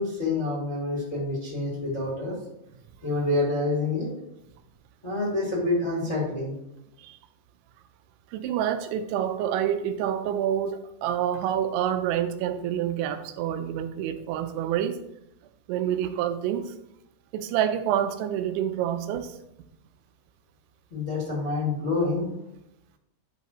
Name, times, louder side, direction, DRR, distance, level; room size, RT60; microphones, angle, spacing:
voice 1, 0.0-2.4 3.0-4.1 5.0-6.5 20.9-22.3, left 2 dB, 25° left, -7 dB, 1.6 m, -27 dB
voice 2, 8.3-15.0 15.7-16.7 17.3-19.4, right 10 dB, 90° right, 8 dB, 3.0 m, -27 dB
11.5 x 5.6 x 3.0 m, 0.83 s
omnidirectional pair, 5.2 m